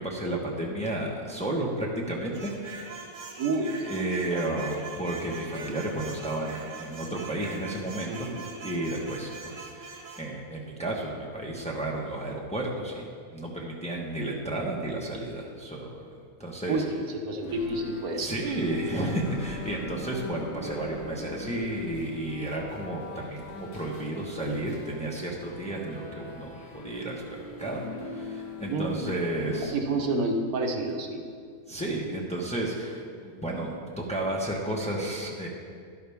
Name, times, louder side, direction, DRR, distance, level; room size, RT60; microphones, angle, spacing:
voice 1, 0.0-2.5 3.8-8.3 8.6-13.1 13.3-15.9 16.4-16.8 18.2-27.8 28.1-29.7 31.7-35.5, right 1 dB, 5° left, -2 dB, 1.1 m, -32 dB
sound 1, 2.3-10.3, right 4 dB, 60° right, 1.2 m, -42 dB
voice 2, 3.4-3.9 4.3-4.6 8.1-8.5 16.7-18.5 28.7-29.1 29.7-31.2, right 2 dB, 75° right, 2 dB, 1.5 m, -30 dB
sound 2, 17.4-29.6, left 3 dB, 85° left, 1.8 m, -42 dB
11.5 x 11.5 x 3.6 m, 2.1 s
omnidirectional pair, 1.6 m